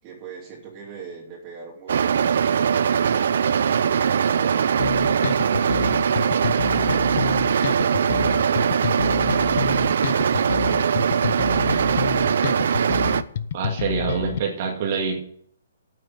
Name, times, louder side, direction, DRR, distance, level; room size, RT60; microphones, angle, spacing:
voice 1, 0.0-2.9, right 6 dB, 25° right, -4 dB, 2.8 m, -42 dB
sound 1, 1.9-13.2, right 7 dB, 65° right, 0.7 m, -21 dB
sound 2, 4.8-14.4, left 9 dB, 55° left, 0.7 m, -28 dB
voice 2, 13.5-15.2, right 6 dB, 45° right, 1 dB, 2.2 m, -26 dB
9.1 x 7.8 x 8.6 m, 0.65 s
hypercardioid pair, 145°, 0 cm